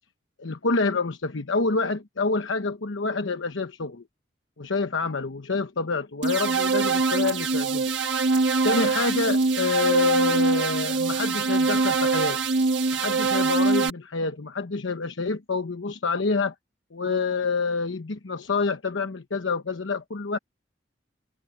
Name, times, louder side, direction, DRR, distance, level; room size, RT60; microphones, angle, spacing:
voice 1, 0.4-4.0 4.6-7.9 8.6-12.4 12.9-16.5 16.9-20.4, left 4 dB, 85° left, 1.0 m, -27 dB
sound 1, 6.2-13.9, right 4 dB, 75° right, 1.4 m, -23 dB
head